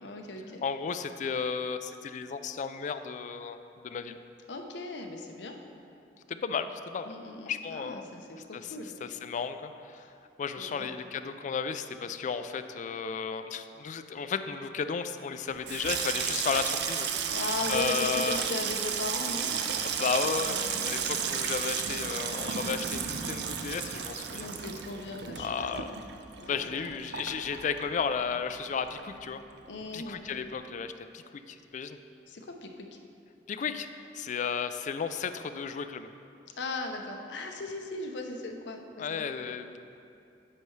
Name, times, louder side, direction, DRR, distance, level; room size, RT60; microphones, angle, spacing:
voice 1, 0.0-0.6 4.5-5.6 7.1-9.0 10.6-10.9 17.3-19.5 20.6-21.3 24.3-25.6 26.4-26.9 29.7-30.2 32.3-32.9 36.6-39.3, left 2 dB, 75° left, 3 dB, 0.7 m, -38 dB
voice 2, 0.6-3.6 3.8-4.2 6.3-7.1 7.5-8.1 8.5-8.7 9.0-10.1 10.4-17.1 17.7-18.4 19.8-24.5 25.4-25.9 26.4-29.4 29.9-32.0 33.5-33.9 34.1-36.1 39.0-39.8, left 6 dB, 45° left, 10 dB, 0.3 m, -33 dB
Water tap faucet / Sink (filling or washing), 15.5-28.4 28.7-29.3 29.6-29.9, right 7 dB, 65° right, 0.5 m, -33 dB
9.9 x 6.5 x 3.2 m, 2.6 s
head